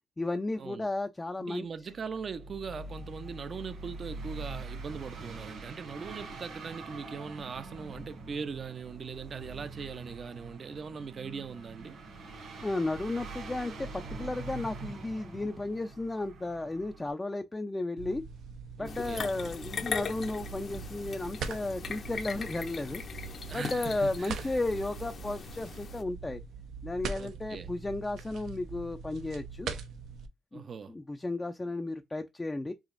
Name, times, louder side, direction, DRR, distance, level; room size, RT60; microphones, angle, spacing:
voice 1, 0.2-1.7 12.6-18.2 18.8-23.0 23.5-26.4 26.8-29.7 30.5-32.7, left 2 dB, 15° left, 0.5 m, -34 dB
voice 2, 1.4-12.0 18.8-19.3 23.5-24.5 27.2-27.7 30.5-30.9, right 6 dB, 45° right, 0.7 m, -40 dB
sound 1, 1.9-17.1, right 3 dB, 60° right, 2.2 m, -44 dB
sound 2, 18.0-30.3, right 5 dB, 75° right, 0.8 m, -42 dB
sound 3, 18.8-26.0, left 5 dB, 50° left, 0.7 m, -40 dB
5.0 x 2.9 x 2.5 m
cardioid pair, 90°, 0 cm